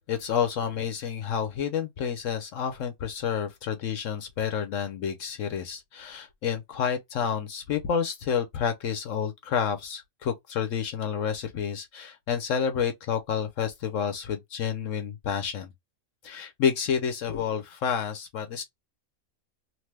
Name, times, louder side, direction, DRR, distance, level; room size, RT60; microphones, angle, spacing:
voice 1, 0.0-15.7 16.2-18.6, left 7 dB, 70° left, 1.0 m, -29 dB
2.9 x 2.1 x 3.2 m
omnidirectional pair, 1.5 m